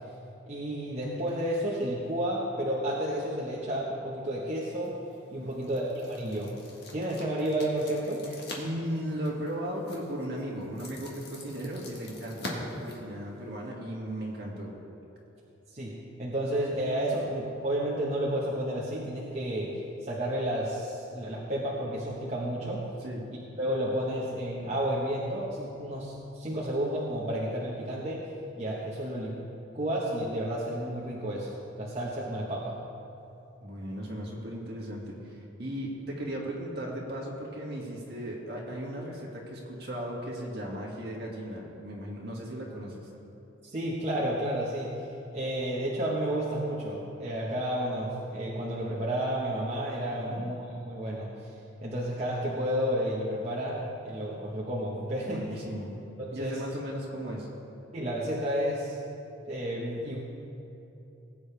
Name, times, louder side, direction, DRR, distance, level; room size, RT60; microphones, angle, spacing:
voice 1, 0.5-4.9 5.3-6.5 6.9-8.2 15.7-19.7 20.0-22.8 23.3-28.2 28.6-29.3 29.7-32.8 43.6-44.9 45.3-51.3 51.8-55.6 56.2-56.6 57.9-59.0 59.5-60.2, right 1 dB, 35° right, -7 dB, 1.3 m, -31 dB
sound 1, 4.7-13.7, left 2 dB, 55° left, 1.7 m, -45 dB
voice 2, 8.6-14.7 23.0-23.2 33.6-43.1 50.3-50.4 55.2-55.9 56.3-57.5, right 1 dB, 55° right, -3 dB, 2.2 m, -36 dB
19.5 x 8.7 x 3.4 m, 2.9 s
head